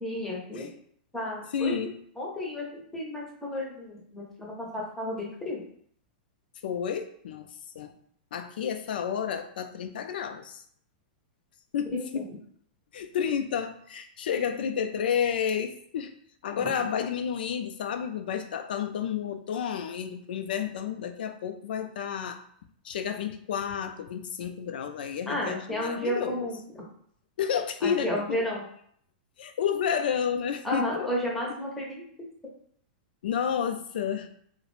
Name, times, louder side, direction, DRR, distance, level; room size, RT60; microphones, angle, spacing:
voice 1, 0.0-0.7 1.1-1.8 2.2-2.7 2.9-5.6 11.9-12.2 25.3-26.9 27.8-28.6 30.6-32.0, left 1 dB, 5° left, -3 dB, 0.6 m, -32 dB
voice 2, 1.5-2.0 6.6-7.9 8.3-10.6 11.7-12.3 12.9-16.1 16.4-22.4 22.8-26.5 27.4-28.4 29.4-31.1 31.4-31.6 33.2-34.3, left 8 dB, 75° left, 8 dB, 0.3 m, -31 dB
2.4 x 2.0 x 3.0 m, 0.63 s
supercardioid pair, 160°, 5 cm